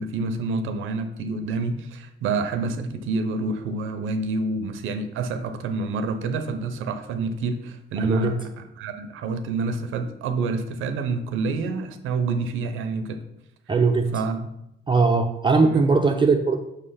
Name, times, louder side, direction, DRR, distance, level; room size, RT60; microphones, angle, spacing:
voice 1, 0.0-13.2 14.1-14.5 15.6-15.8, right 3 dB, 90° right, 8 dB, 0.7 m, -28 dB
voice 2, 8.0-8.4 13.7-14.1 14.9-16.6, right 4 dB, 25° right, 4 dB, 0.6 m, -20 dB
6.3 x 3.3 x 5.6 m, 0.81 s
cardioid pair, 90°, 20 cm